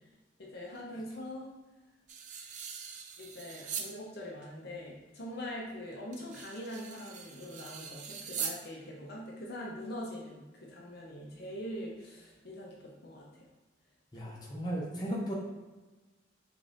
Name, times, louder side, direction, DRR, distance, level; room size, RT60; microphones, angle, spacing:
voice 1, 0.4-1.5 3.2-13.4, left 1 dB, 55° left, -3 dB, 0.7 m, -43 dB
sound 1, 2.1-3.9 4.4-4.5 6.1-8.6, right 6 dB, 40° right, 0.3 m, -41 dB
voice 2, 14.1-15.3, equal, 20° left, -5 dB, 0.8 m, -35 dB
4.9 x 2.6 x 2.6 m, 1.2 s
head